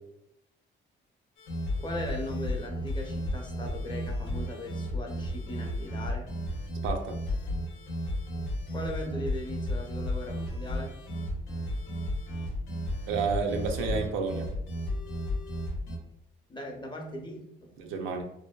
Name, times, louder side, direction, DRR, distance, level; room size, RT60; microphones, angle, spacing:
sound 1, 1.4-16.0, left 1 dB, 85° left, 0.6 m, -33 dB
voice 1, 1.8-6.3 8.7-10.9 16.5-17.7, left 1 dB, 25° left, 1 dB, 0.6 m, -39 dB
voice 2, 6.8-7.2 13.1-14.5 17.8-18.2, right 5 dB, 90° right, 4 dB, 0.4 m, -30 dB
2.6 x 2.1 x 2.2 m, 0.80 s
cardioid pair, 90°, 20 cm